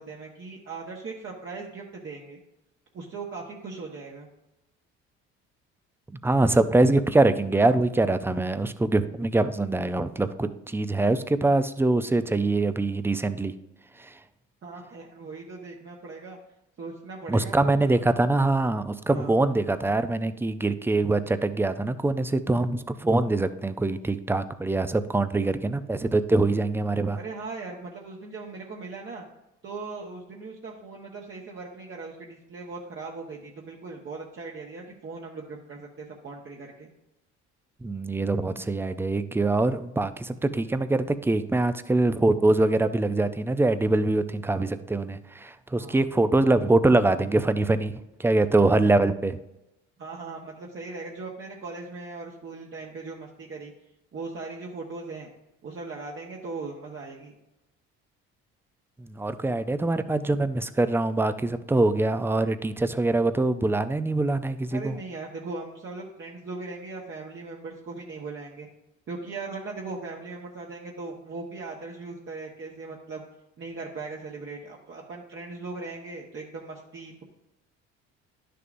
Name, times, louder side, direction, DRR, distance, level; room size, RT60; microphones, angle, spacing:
voice 1, 0.0-2.4 2.9-4.3 14.6-16.4 16.8-17.9 19.0-19.3 27.1-29.2 29.6-36.9 45.8-46.0 50.0-53.7 54.1-55.3 55.6-57.3 64.7-68.7 69.1-73.2 73.6-77.2, right 3 dB, 45° right, -2 dB, 1.3 m, -39 dB
voice 2, 6.2-13.5 14.0-14.1 17.3-27.2 37.8-47.9 48.2-49.4 59.0-65.0, right 2 dB, 10° right, 12 dB, 0.5 m, -24 dB
10.5 x 6.7 x 2.6 m, 0.92 s
cardioid pair, 95°, 30 cm